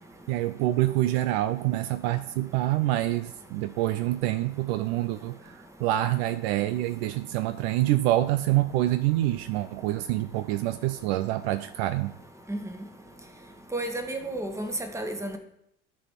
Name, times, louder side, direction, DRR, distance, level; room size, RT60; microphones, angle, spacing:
voice 1, 0.3-12.1, right 15 dB, 60° right, 12 dB, 0.5 m, -26 dB
voice 2, 13.7-15.4, right 1 dB, 10° right, 6 dB, 1.3 m, -32 dB
12.5 x 4.2 x 5.7 m, 0.80 s
hypercardioid pair, 70°, 36 cm